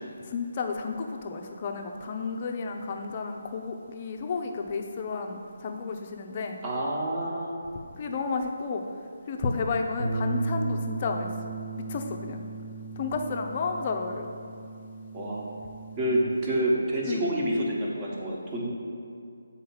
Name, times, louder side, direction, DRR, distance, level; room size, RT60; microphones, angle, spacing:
voice 1, 0.3-6.6 8.0-8.8 9.3-11.3 11.8-12.4 13.0-14.3 17.1-17.3, left 4 dB, 35° left, 3 dB, 0.6 m, -32 dB
voice 2, 6.6-7.6 15.1-15.5 16.0-18.7, right 1 dB, 20° right, -4 dB, 1.2 m, -28 dB
Bass guitar, 10.0-16.2, right 3 dB, 75° right, 1.1 m, -35 dB
7.6 x 4.4 x 5.7 m, 2.4 s
figure-of-eight pair, 150°, 0 cm